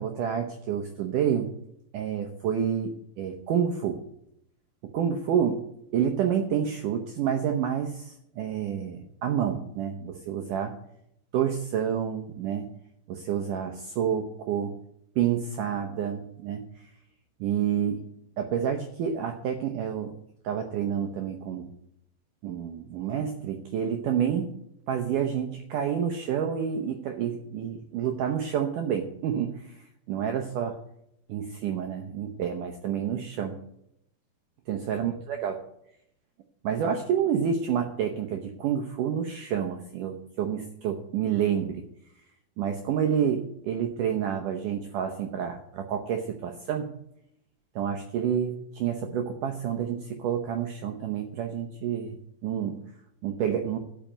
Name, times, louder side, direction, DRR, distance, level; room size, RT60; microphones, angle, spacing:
voice 1, 0.0-1.5 1.9-4.0 4.9-5.6 5.9-10.8 11.3-12.7 13.1-14.7 15.2-16.7 17.4-18.1 18.4-20.2 20.4-21.7 22.4-24.5 24.9-29.7 30.1-30.8 31.3-33.6 34.7-35.6 36.6-41.8 42.6-46.9 47.8-52.2 52.4-52.8 53.2-53.8, right 8 dB, 80° right, 4 dB, 1.8 m, -29 dB
12.5 x 5.8 x 8.9 m, 0.76 s
omnidirectional pair, 4.9 m